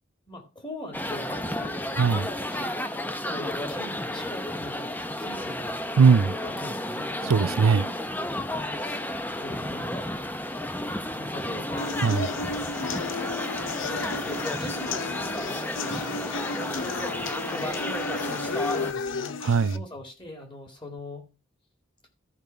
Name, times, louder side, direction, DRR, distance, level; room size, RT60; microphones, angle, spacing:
voice 1, 0.3-1.7 2.5-2.7 3.2-4.9 5.2-5.8 6.2-7.1 8.8-9.0 9.4-10.0 11.1-12.5 13.9-15.1 15.4-16.3 17.4-21.3, left 1 dB, 25° left, 2.4 m, -41 dB
sound 1, 0.9-18.9, left 1 dB, 10° left, 0.7 m, -32 dB
voice 2, 1.9-2.3 6.0-6.3 7.2-7.9 12.0-12.3 19.4-19.8, right 5 dB, 85° right, 0.4 m, -20 dB
sound 2, 11.8-19.8, left 4 dB, 65° left, 0.6 m, -33 dB
14.0 x 5.3 x 4.6 m
head